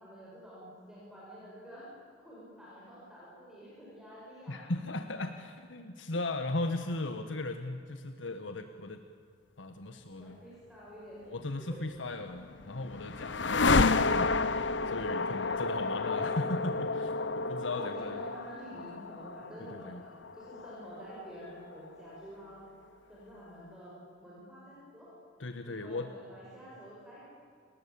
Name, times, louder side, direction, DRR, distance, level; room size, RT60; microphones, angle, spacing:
voice 1, 0.0-1.9 2.2-4.6 6.2-6.3 10.1-11.3 11.7-11.8 15.3-16.2 17.7-22.8 23.1-25.1 25.6-27.3, equal, 5° right, -8 dB, 7.4 m, -49 dB
voice 2, 4.5-9.0 9.6-10.4 11.3-18.2 19.6-20.0 25.4-26.1, left 2 dB, 90° left, 7 dB, 1.5 m, -37 dB
sound 1, 12.1-22.2, left 3 dB, 70° left, 1.0 m, -31 dB
29.5 x 20.0 x 8.7 m, 2.3 s
head